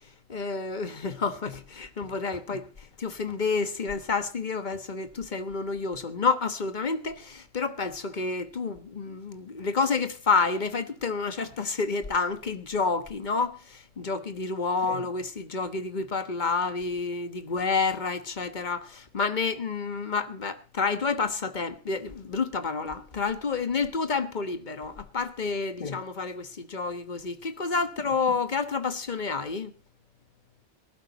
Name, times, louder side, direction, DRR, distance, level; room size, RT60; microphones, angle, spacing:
voice 1, 0.3-29.7, left 4 dB, 45° left, 1.4 m, -29 dB
18.5 x 12.5 x 4.1 m
omnidirectional pair, 1.1 m